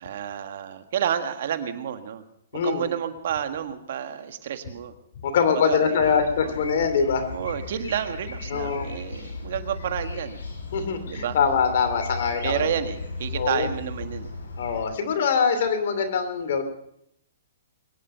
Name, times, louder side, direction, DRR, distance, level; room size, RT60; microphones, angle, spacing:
voice 1, 0.0-2.2 2.6-4.9 5.5-6.5 7.3-10.4 11.1-11.4 12.4-14.3, right 9 dB, 60° right, 8 dB, 1.6 m, -30 dB
voice 2, 2.5-2.9 5.2-7.2 8.5-8.9 10.7-12.7 13.3-13.7 14.6-16.6, left 6 dB, 60° left, 8 dB, 2.9 m, -23 dB
sound 1, 6.0-14.8, left 3 dB, 90° left, 5.5 m, -36 dB
23.0 x 10.5 x 5.6 m, 0.73 s
hypercardioid pair, 150°, 0 cm